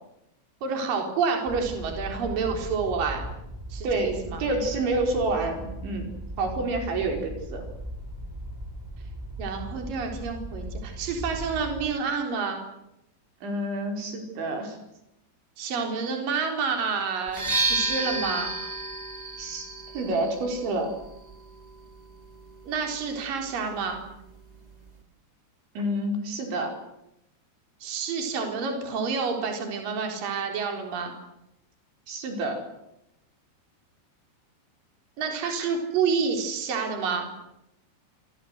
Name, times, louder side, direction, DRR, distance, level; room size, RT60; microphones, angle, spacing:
voice 1, 0.6-3.2 3.7-4.4 9.4-12.6 15.6-18.5 22.7-24.0 27.8-31.1 35.2-37.3, right 5 dB, 50° right, 3 dB, 5.5 m, -29 dB
sound 1, 1.5-11.9, right 1 dB, 5° right, 2.1 m, -38 dB
voice 2, 3.8-6.1 6.4-7.7 13.4-14.8 19.4-19.7 19.9-20.9 25.8-26.7 32.1-32.6 35.4-35.7, right 2 dB, 90° right, 4 dB, 7.2 m, -28 dB
sound 2, 17.3-25.0, right 3 dB, 30° right, 0.7 m, -33 dB
27.5 x 24.0 x 8.2 m, 0.85 s
omnidirectional pair, 5.1 m